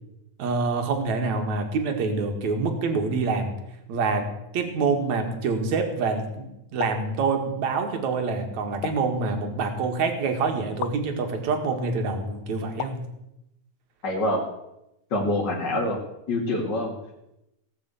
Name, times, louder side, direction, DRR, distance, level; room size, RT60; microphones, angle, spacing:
voice 1, 0.4-3.5 3.9-4.3 4.5-13.0, right 4 dB, 75° right, 5 dB, 3.2 m, -26 dB
sound 1, 6.8-7.1 8.8-9.2 10.8-11.0 12.8-13.1, left 12 dB, 75° left, 1.5 m, -34 dB
voice 2, 14.0-14.4 15.1-16.0 16.3-16.9, left 1 dB, 35° left, -3 dB, 3.1 m, -25 dB
18.5 x 6.9 x 8.3 m, 0.87 s
omnidirectional pair, 3.3 m